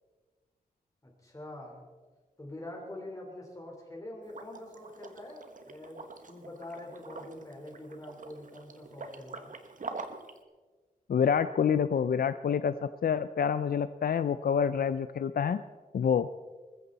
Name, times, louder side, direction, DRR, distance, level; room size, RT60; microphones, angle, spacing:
voice 1, 1.0-1.8 2.4-6.0 6.3-9.5, left 1 dB, 20° left, -2 dB, 4.0 m, -45 dB
Liquid, 4.2-10.4, right 4 dB, 60° right, 1.3 m, -45 dB
voice 2, 11.1-12.7 13.0-15.6 15.9-16.3, left 7 dB, 90° left, 13 dB, 0.5 m, -27 dB
20.0 x 15.0 x 4.1 m, 1.3 s
wide cardioid pair, 125°, 15 cm